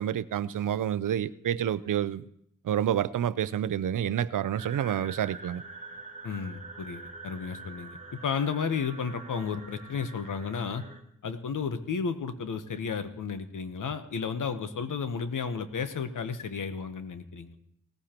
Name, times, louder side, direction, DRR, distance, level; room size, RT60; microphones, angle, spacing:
voice 1, 0.0-2.3 2.6-5.6, right 10 dB, 75° right, 0.5 m, -28 dB
sound 1, 4.5-11.0, right 3 dB, 20° right, 1.6 m, -45 dB
voice 2, 6.2-10.8 11.2-17.6, left 6 dB, 75° left, 1.0 m, -33 dB
18.5 x 14.5 x 3.0 m
wide cardioid pair, 90°, 32 cm